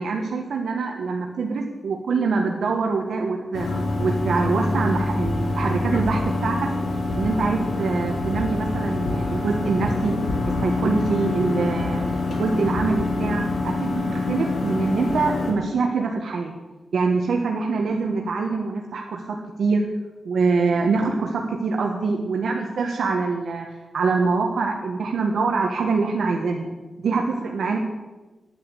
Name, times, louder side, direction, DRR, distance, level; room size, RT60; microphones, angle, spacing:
voice 1, 0.0-6.7 7.1-10.1 10.6-12.0 12.4-16.5 16.9-19.8 20.2-23.6 23.9-26.7 27.0-27.8, right 4 dB, 80° right, 1 dB, 1.4 m, -24 dB
sound 1, 3.5-15.5, left 2 dB, 85° left, 3.1 m, -25 dB
10.5 x 9.6 x 8.2 m, 1.2 s
wide cardioid pair, 170°, 0 cm